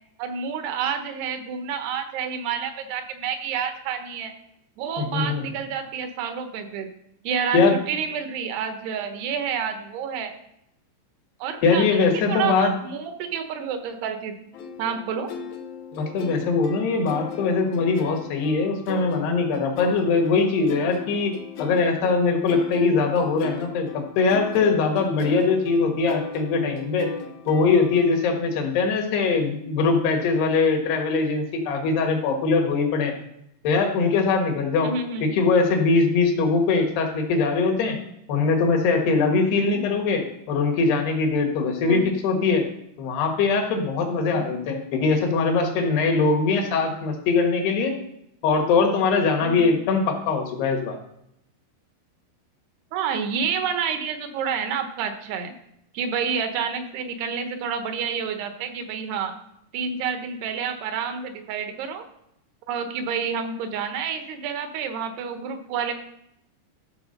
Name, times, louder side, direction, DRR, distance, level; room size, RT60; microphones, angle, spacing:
voice 1, 0.2-4.3 4.8-6.9 7.2-10.3 11.4-14.4 14.8-15.3 34.8-35.2 39.6-39.8 41.8-42.1 49.4-49.7 52.9-55.5 55.9-59.3 59.7-62.0 62.7-65.9, right 6 dB, 75° right, 7 dB, 3.0 m, -29 dB
voice 2, 5.0-5.4 7.5-7.8 11.6-12.7 15.9-27.1 27.5-33.1 33.6-34.9 35.2-38.0 38.3-42.6 43.0-47.9 48.4-51.0, left 4 dB, 75° left, 2 dB, 3.6 m, -22 dB
sound 1, 14.5-28.1, left 6 dB, 90° left, 1.6 m, -37 dB
14.0 x 4.8 x 6.5 m, 0.78 s
omnidirectional pair, 4.8 m